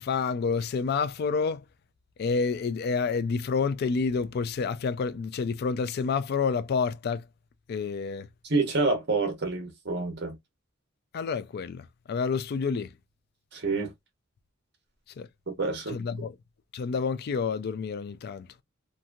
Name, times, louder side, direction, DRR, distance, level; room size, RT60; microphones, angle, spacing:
voice 1, 0.0-1.6 2.2-7.2 7.7-8.3 11.1-12.9 15.2-15.3 15.9-16.3 16.7-18.5, left 5 dB, 50° left, 0.3 m, -29 dB
voice 2, 8.4-10.4 13.5-13.9 15.5-16.0, right 3 dB, 55° right, 1.0 m, -28 dB
2.8 x 2.6 x 2.3 m
head